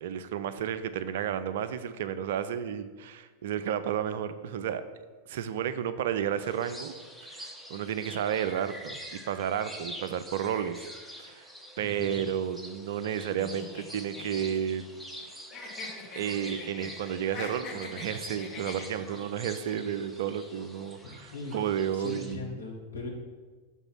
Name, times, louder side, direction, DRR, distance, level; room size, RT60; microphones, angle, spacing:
voice 1, 0.0-4.8 5.3-6.9 7.3-10.9 11.2-11.5 11.8-14.8 16.2-22.5, right 9 dB, 55° right, 12 dB, 0.4 m, -32 dB
sound 1, 6.4-22.4, equal, ahead, 0.7 m, -46 dB
voice 2, 11.8-12.2 21.3-21.5 21.9-23.1, left 3 dB, 75° left, -1 dB, 1.4 m, -39 dB
sound 2, 13.4-15.2 15.5-16.9 17.2-19.2, left 4 dB, 35° left, 1.6 m, -43 dB
6.0 x 3.9 x 5.6 m, 1.3 s
figure-of-eight pair, 90°, 0 cm